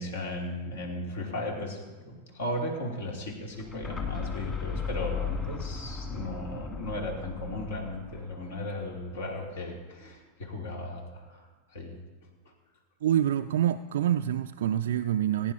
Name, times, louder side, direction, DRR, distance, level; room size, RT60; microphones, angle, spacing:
voice 1, 0.0-1.8 2.0-11.4 11.7-12.0, left 1 dB, 60° left, 0 dB, 2.9 m, -36 dB
sound 1, 3.5-9.3, left 5 dB, 15° left, 2.3 m, -37 dB
voice 2, 13.0-15.5, right 10 dB, 60° right, 7 dB, 0.4 m, -26 dB
21.0 x 10.0 x 2.9 m, 1.3 s
figure-of-eight pair, 90°, 0 cm